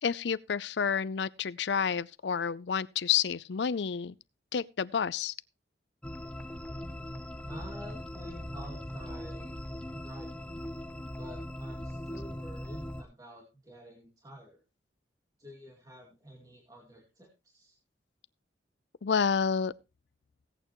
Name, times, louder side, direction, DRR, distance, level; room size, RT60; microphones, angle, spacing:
voice 1, 0.0-4.1 4.5-5.3 19.0-19.7, left 7 dB, 70° left, 0.5 m, -29 dB
sound 1, 6.0-13.0, left 1 dB, 5° left, 0.7 m, -40 dB
voice 2, 7.4-10.5 11.2-14.6 15.4-17.8, equal, 20° right, 2.3 m, -49 dB
17.0 x 8.9 x 3.0 m
head